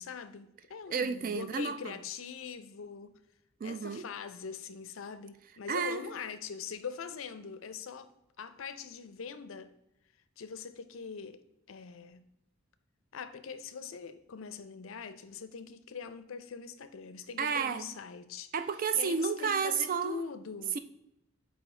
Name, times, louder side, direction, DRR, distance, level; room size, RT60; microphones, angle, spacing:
voice 1, 0.0-3.2 3.6-8.1 8.4-9.7 10.4-11.4 11.7-12.3 13.1-18.5 18.9-20.8, left 6 dB, 70° left, 0.5 m, -42 dB
voice 2, 0.9-2.0 3.6-4.0 5.7-6.1 17.4-17.9 18.5-20.2 20.7-20.8, right 6 dB, 40° right, 0.3 m, -31 dB
8.3 x 2.8 x 4.3 m
head